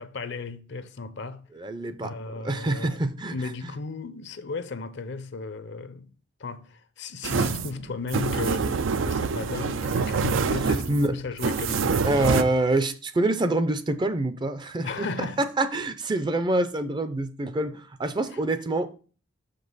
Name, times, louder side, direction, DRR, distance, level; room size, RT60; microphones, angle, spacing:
voice 1, 0.0-1.5 2.0-3.0 3.3-6.1 6.4-12.1 14.8-15.5 18.3-18.4, left 3 dB, 65° left, 0.6 m, -35 dB
voice 2, 1.6-2.1 2.4-3.4 10.9-11.1 12.0-15.1 15.4-18.9, right 2 dB, 25° right, 0.5 m, -26 dB
sound 1, 7.2-12.4, right 5 dB, 80° right, 0.5 m, -26 dB
6.3 x 5.3 x 4.0 m
head